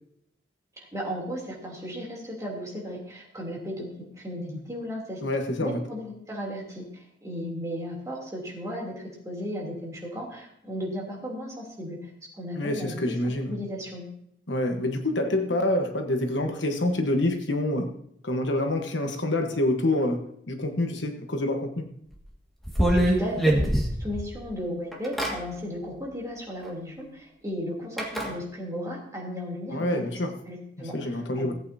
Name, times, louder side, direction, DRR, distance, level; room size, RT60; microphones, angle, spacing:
voice 1, 0.8-5.2 5.6-8.9 9.2-12.1 12.4-14.0 23.1-23.7 24.0-30.1 30.5-31.5, equal, 15° right, 3.2 m, -35 dB
voice 2, 5.2-5.8 12.6-13.5 14.5-18.0 18.2-21.9 29.7-30.4 30.8-31.5, left 1 dB, 75° left, 1.3 m, -27 dB
sound 1, 22.1-22.2 22.6-24.4 24.9-25.4 26.6-26.7 28.0-28.3, right 1 dB, ahead, 1.8 m, -23 dB
18.0 x 8.5 x 2.8 m
head